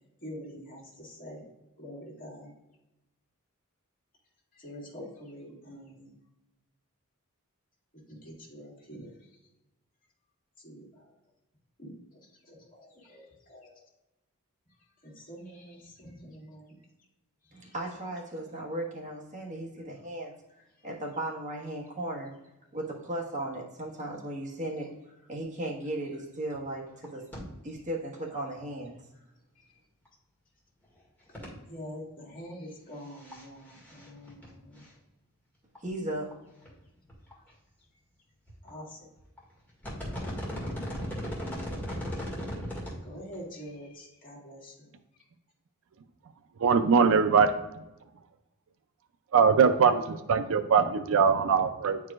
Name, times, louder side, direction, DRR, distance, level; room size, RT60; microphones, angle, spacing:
voice 1, 0.2-1.4 1.8-2.5 4.5-6.1 8.1-9.1 10.6-11.0 11.8-12.2 12.5-13.8 15.0-16.7 17.6-17.7 29.6-29.7 31.7-34.8 38.6-39.0 43.0-44.9, equal, 40° left, -4 dB, 2.1 m, -45 dB
voice 2, 17.5-20.3 20.8-22.3 22.7-24.9 25.3-27.2 27.6-29.0 35.8-36.3, right 1 dB, 35° right, -2 dB, 1.4 m, -36 dB
sound 1, 26.5-26.6 26.9-27.1 27.3-27.4 27.7-27.8 30.0-30.1 31.3-31.5 33.1-33.4 33.7-34.5 34.8-34.9 35.7-35.8 36.3-36.4 36.6-36.7 37.1-37.5 38.5-38.7 39.2-39.4 39.7-43.0 43.3-43.4, equal, 10° left, 1.9 m, -36 dB
voice 3, 46.6-47.5 49.3-52.0, right 6 dB, 60° right, 10 dB, 0.4 m, -22 dB
9.7 x 4.7 x 2.4 m, 0.97 s
head